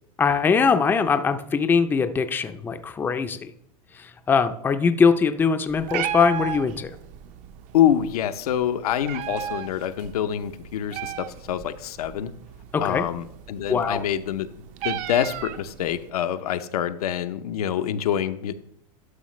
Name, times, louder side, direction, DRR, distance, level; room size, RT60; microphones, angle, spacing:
voice 1, 0.2-3.5 3.9-7.0 12.7-13.0 13.7-14.0, left 5 dB, 10° left, 9 dB, 0.4 m, -22 dB
Meow, 5.7-16.1, right 10 dB, 40° right, 0.6 m, -36 dB
voice 2, 7.7-12.3 12.8-18.5, left 10 dB, 85° left, 9 dB, 0.7 m, -26 dB
11.5 x 5.7 x 3.1 m, 0.72 s
supercardioid pair, 130°, 19 cm